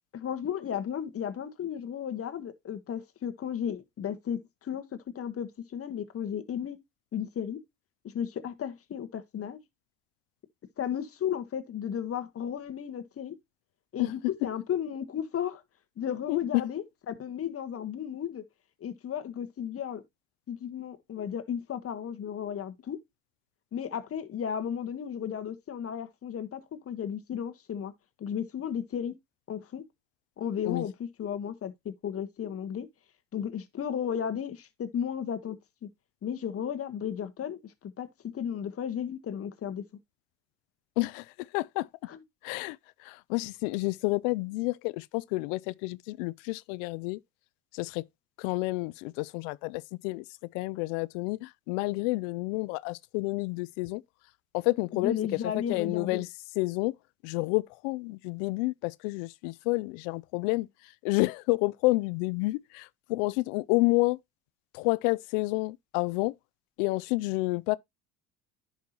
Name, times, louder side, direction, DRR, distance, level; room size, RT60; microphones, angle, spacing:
voice 1, 0.1-4.8 5.1-6.8 7.1-7.6 8.0-9.6 10.8-13.3 13.9-15.6 16.0-18.4 18.8-20.0 20.5-23.0 23.7-26.6 26.8-27.9 28.2-29.1 29.5-29.8 30.4-32.9 33.3-35.9 36.2-38.1 38.3-39.8 42.1-42.2 54.9-56.2, left 8 dB, 40° left, 1.4 m, -34 dB
voice 2, 41.5-41.9 42.4-42.8 43.1-47.2 47.8-48.0 48.4-50.2 50.5-54.0 54.5-55.2 55.5-56.3 56.6-56.9 57.2-60.7 61.0-64.2 64.7-66.3 66.8-67.8, left 24 dB, 85° left, 0.5 m, -29 dB
10.5 x 5.7 x 2.9 m
supercardioid pair, 100°, 37 cm